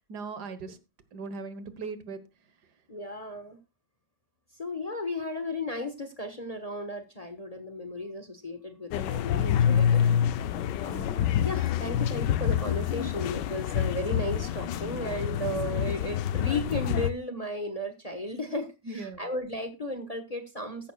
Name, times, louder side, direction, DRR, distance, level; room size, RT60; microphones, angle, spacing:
voice 1, 0.1-0.8 1.1-2.2 10.9-11.1 11.8-11.9 18.8-19.2, right 4 dB, 70° right, 13 dB, 1.8 m, -38 dB
voice 2, 2.9-3.6 4.5-10.0 10.8-20.9, left 1 dB, 25° left, 8 dB, 1.1 m, -35 dB
sound 1, 8.9-17.1, left 9 dB, 80° left, 1.3 m, -27 dB
14.5 x 11.0 x 2.3 m, 0.27 s
omnidirectional pair, 1.9 m